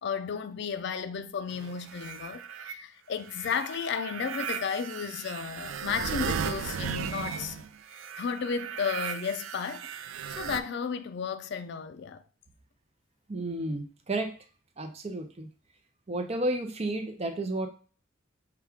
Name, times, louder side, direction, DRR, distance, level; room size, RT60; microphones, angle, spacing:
voice 1, 0.0-7.6 8.2-9.9 10.3-12.2, left 6 dB, 60° left, 0.4 m, -33 dB
sound 1, 1.5-2.7 3.3-10.6, right 7 dB, 90° right, 0.4 m, -36 dB
voice 2, 13.3-14.3 14.8-15.5 16.1-17.7, right 2 dB, 35° right, 0.6 m, -32 dB
5.7 x 2.4 x 3.5 m
head